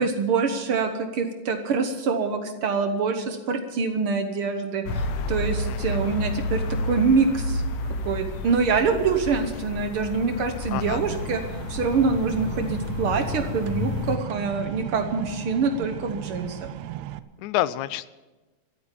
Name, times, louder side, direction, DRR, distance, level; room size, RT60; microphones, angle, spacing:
voice 1, 0.0-7.6 8.0-11.4 11.7-16.7, right 5 dB, 60° right, 7 dB, 1.6 m, -25 dB
sound 1, 4.8-14.2, left 2 dB, 65° left, 1.8 m, -30 dB
voice 2, 5.7-6.0 10.7-11.0 17.4-18.1, left 14 dB, 85° left, 17 dB, 2.0 m, -28 dB
sound 2, 10.9-17.2, right 14 dB, 80° right, 1.9 m, -37 dB
14.0 x 8.8 x 9.9 m, 1.2 s
omnidirectional pair, 3.4 m